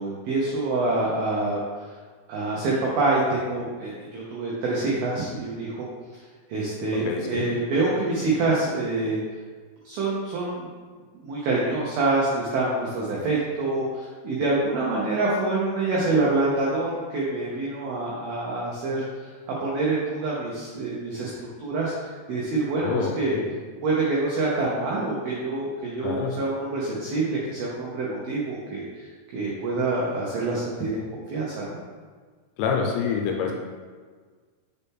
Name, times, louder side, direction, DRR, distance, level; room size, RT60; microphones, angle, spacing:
voice 1, 0.0-2.0 2.3-5.9 6.1-9.2 9.8-10.7 11.1-19.3 19.6-23.4 23.8-31.8, right 2 dB, 80° right, -5 dB, 2.1 m, -26 dB
voice 2, 7.1-7.5 22.8-23.5 26.0-26.3 32.6-33.5, left 6 dB, 80° left, 1 dB, 2.8 m, -27 dB
6.7 x 4.1 x 3.6 m, 1.5 s
omnidirectional pair, 5.4 m